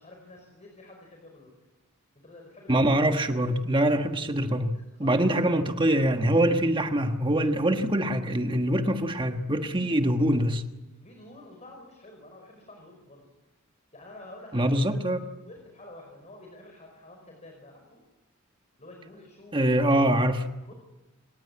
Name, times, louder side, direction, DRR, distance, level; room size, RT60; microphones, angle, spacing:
voice 1, 0.0-1.5 2.2-3.1 4.7-5.5 11.0-13.3 13.9-15.0 15.5-18.0 18.8-20.0 20.6-20.7, left 1 dB, 35° left, 5.3 m, -49 dB
voice 2, 2.7-10.6 14.5-15.2 19.5-20.5, right 1 dB, 25° right, 1.4 m, -24 dB
27.0 x 19.5 x 8.7 m
head